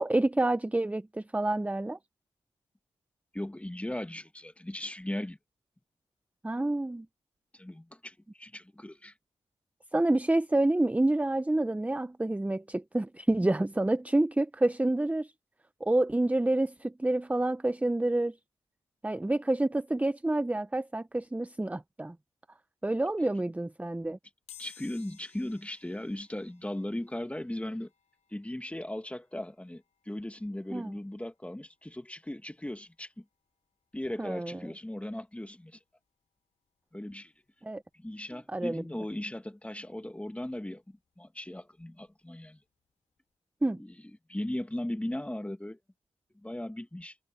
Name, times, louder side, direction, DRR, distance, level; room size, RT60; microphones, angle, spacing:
voice 1, 0.0-2.0 6.4-7.1 9.9-15.3 15.8-18.3 19.0-22.1 22.8-24.2 30.7-30.9 34.2-34.6 37.6-37.8 38.5-38.8 43.6-43.8, right 2 dB, 10° right, 0.7 m, -28 dB
voice 2, 3.3-5.4 7.5-9.1 24.6-27.9 28.3-33.2 33.9-35.8 36.9-37.3 37.9-42.6 43.8-43.9 44.3-45.8 46.4-47.1, left 1 dB, 10° left, 2.1 m, -38 dB
sound 1, 24.5-35.1 35.6-35.7 36.9-37.0 37.2-39.3 39.7-42.3 42.7-42.9 43.2-43.3, left 11 dB, 80° left, 3.8 m, -60 dB
supercardioid pair, 45°, 12 cm